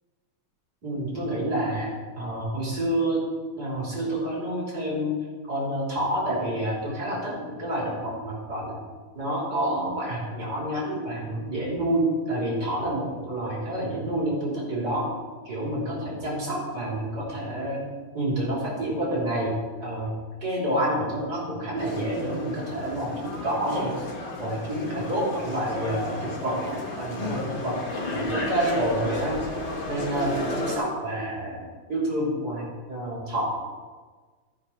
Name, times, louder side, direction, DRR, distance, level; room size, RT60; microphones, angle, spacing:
voice 1, 0.8-1.9 2.2-3.3 3.6-5.2 5.5-8.8 9.2-15.1 15.5-17.9 18.1-19.6 19.8-20.2 20.4-24.0 24.4-27.8 28.1-29.4 29.9-33.5, right 1 dB, 50° right, -5 dB, 3.7 m, -28 dB
sound 1, 21.8-30.8, left 2 dB, 30° left, 1.3 m, -33 dB
13.5 x 6.0 x 5.7 m, 1.4 s
omnidirectional pair, 2.3 m